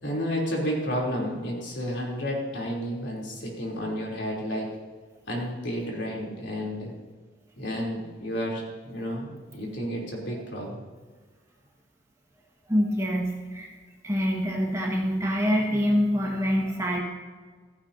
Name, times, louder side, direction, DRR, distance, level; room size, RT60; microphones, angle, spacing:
voice 1, 0.0-4.7 5.3-6.9 7.6-10.7, equal, 70° left, -2 dB, 3.6 m, -31 dB
voice 2, 12.7-13.7 14.0-17.0, equal, 15° right, -1 dB, 1.7 m, -25 dB
15.5 x 15.0 x 2.9 m, 1.4 s
head